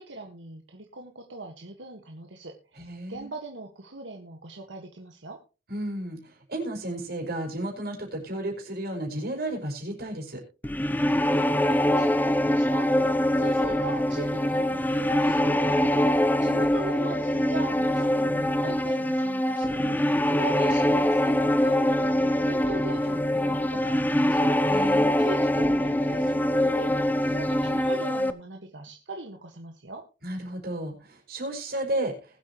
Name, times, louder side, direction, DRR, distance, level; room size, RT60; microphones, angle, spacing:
voice 1, 0.0-5.4 11.6-12.9 13.4-24.8 25.2-26.9 27.3-30.0, right 3 dB, 80° right, 3 dB, 1.6 m, -40 dB
voice 2, 2.8-3.3 5.7-10.4 24.7-25.3 30.2-32.1, right 1 dB, 55° right, 2 dB, 5.3 m, -33 dB
sound 1, 10.6-28.3, left 1 dB, 10° left, 0.6 m, -24 dB
21.0 x 8.0 x 3.0 m, 0.32 s
head